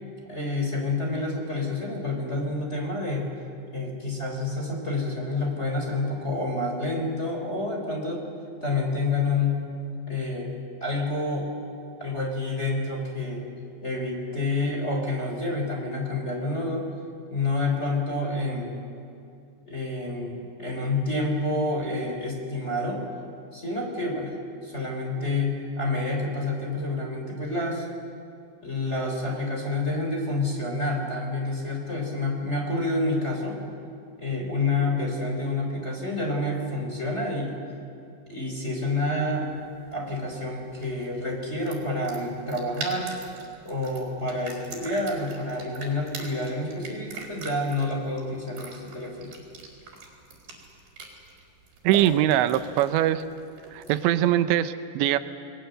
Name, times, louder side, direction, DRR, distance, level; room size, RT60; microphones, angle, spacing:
voice 1, 0.3-3.3 3.7-8.3 8.6-9.6 10.1-10.5 10.8-11.5 12.0-13.4 13.8-16.8 17.3-18.7 19.7-23.0 23.5-24.3 24.6-27.9 28.6-33.6 34.2-37.6 38.3-39.5 39.9-43.2 43.6-49.3, left 2 dB, 15° left, 0 dB, 3.4 m, -28 dB
sound 1, 39.3-54.2, right 4 dB, 60° right, 5.9 m, -43 dB
voice 2, 51.8-53.2 53.7-55.2, right 12 dB, 85° right, 11 dB, 3.0 m, -22 dB
29.5 x 20.5 x 7.8 m, 2.5 s
omnidirectional pair, 5.1 m